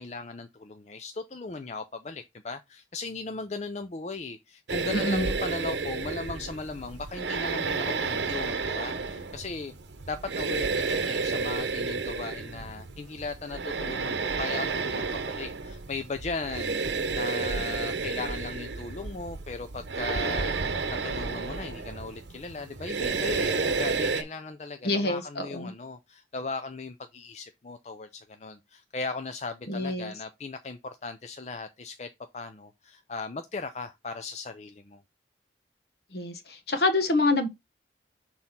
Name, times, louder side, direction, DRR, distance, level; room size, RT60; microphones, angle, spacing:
voice 1, 0.0-9.7 10.1-35.0, left 3 dB, 35° left, 0.5 m, -37 dB
sound 1, 4.7-24.2, right 4 dB, 75° right, 0.9 m, -31 dB
voice 2, 4.9-5.3 24.8-25.7 29.7-30.1 36.1-37.5, left 2 dB, 60° left, 1.2 m, -26 dB
6.2 x 4.2 x 3.7 m
head